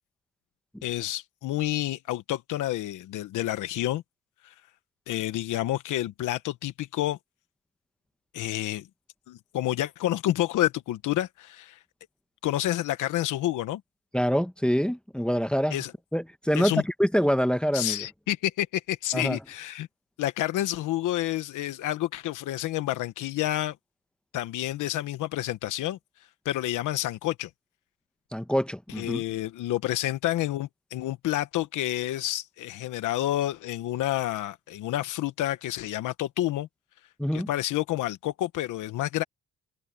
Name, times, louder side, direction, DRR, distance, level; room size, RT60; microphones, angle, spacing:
voice 1, 0.8-4.0 4.4-4.5 5.1-7.2 8.3-8.9 9.3-11.8 12.4-13.8 15.7-15.9 16.5-16.8 17.7-19.9 20.2-23.8 24.3-26.0 26.4-27.5 29.0-36.7 37.3-39.2, left 14 dB, 85° left, 1.1 m, -29 dB
voice 2, 14.1-15.8 16.1-18.0 19.1-19.4 28.3-29.2 37.2-37.5, equal, 5° left, 1.1 m, -25 dB
cardioid pair, 90°, 30 cm